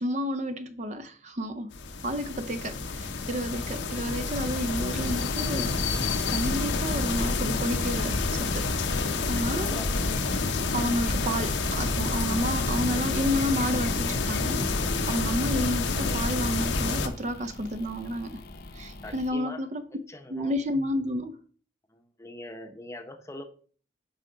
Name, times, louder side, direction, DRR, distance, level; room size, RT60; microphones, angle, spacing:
voice 1, 0.0-1.7 2.0-5.8 6.3-9.0 9.3-9.7 10.7-18.4 18.7-19.8 20.3-21.3, equal, 40° right, 0.5 m, -31 dB
sound 1, 1.7-17.1, left 3 dB, 85° left, 0.8 m, -28 dB
sound 2, 4.7-19.3, left 2 dB, 55° left, 0.7 m, -45 dB
voice 2, 9.3-9.9 19.0-19.7 20.1-20.5 21.9-23.4, left 1 dB, 15° left, 0.8 m, -42 dB
8.0 x 4.9 x 3.9 m
head